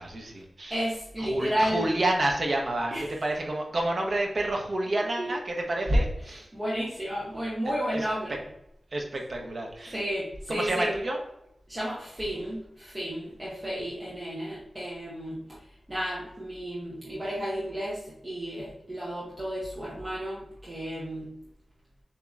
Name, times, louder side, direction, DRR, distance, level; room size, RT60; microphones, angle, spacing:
voice 1, 0.0-0.8 1.2-2.9 3.2-6.5 7.9-8.0 8.9-9.9 10.5-11.2, right 1 dB, 45° right, 1 dB, 0.9 m, -28 dB
voice 2, 0.7-1.9 2.9-3.1 5.2-5.3 6.2-8.3 9.9-10.9 11.7-15.4 15.9-21.3, equal, 20° right, -8 dB, 1.1 m, -32 dB
7.0 x 2.9 x 2.4 m, 0.79 s
wide cardioid pair, 130°, 0 cm